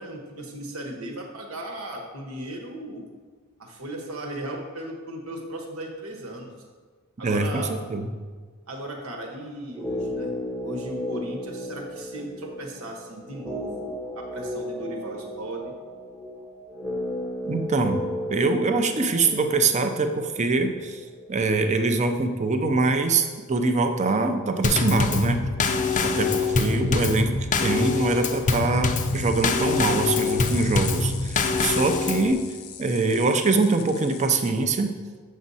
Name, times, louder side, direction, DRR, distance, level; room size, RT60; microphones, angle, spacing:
voice 1, 0.0-3.1 3.6-6.5 7.2-7.8 8.7-10.3 10.6-15.7, right 1 dB, 75° right, 1 dB, 1.3 m, -36 dB
voice 2, 7.2-8.1 17.4-21.0 21.3-25.5 26.0-32.4 32.8-34.9, right 3 dB, 35° right, 7 dB, 0.6 m, -24 dB
sound 1, 9.7-21.8 22.1-22.2, left 1 dB, ahead, 0.7 m, -35 dB
Drum kit / Snare drum / Bass drum, 24.6-32.3, left 4 dB, 35° left, 0.5 m, -24 dB
sound 2, 29.0-34.5, left 8 dB, 80° left, 0.7 m, -40 dB
7.4 x 6.1 x 4.1 m, 1.5 s
head